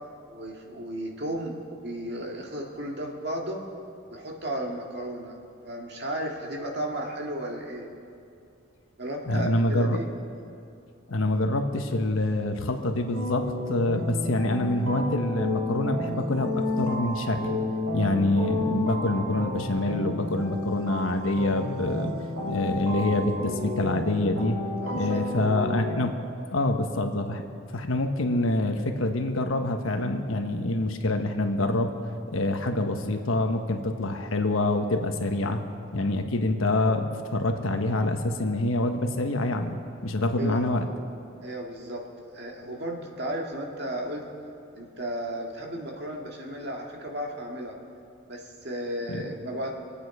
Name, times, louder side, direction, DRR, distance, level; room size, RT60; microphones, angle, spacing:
voice 1, 0.3-3.6 4.1-5.4 5.6-7.9 9.0-10.1 24.8-25.2 40.4-40.7 41.4-42.1 42.3-44.3 44.8-47.8 48.3-49.8, right 1 dB, 55° right, 0 dB, 2.0 m, -34 dB
voice 2, 9.3-10.0 11.1-17.6 17.9-22.1 22.5-24.6 24.9-26.1 26.5-27.4 27.7-31.9 32.3-35.6 35.9-39.8 40.0-40.8 49.1-49.2, left 2 dB, 80° left, 5 dB, 1.2 m, -26 dB
sound 1, 13.1-26.0, left 2 dB, 90° right, 3.1 m, -31 dB
25.5 x 8.7 x 4.8 m, 2.5 s
head